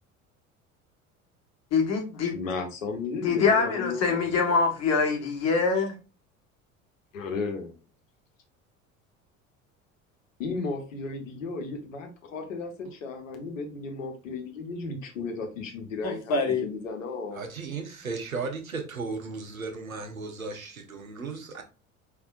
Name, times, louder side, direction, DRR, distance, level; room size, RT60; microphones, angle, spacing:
voice 1, 1.7-2.4 3.2-5.9 16.0-16.6, left 4 dB, 40° left, 1.5 m, -24 dB
voice 2, 2.3-4.6 7.1-7.7 10.4-17.4, left 4 dB, 70° left, 1.1 m, -34 dB
voice 3, 17.3-21.6, right 4 dB, 85° right, 1.0 m, -35 dB
5.2 x 3.4 x 2.5 m
figure-of-eight pair, 65°, 41 cm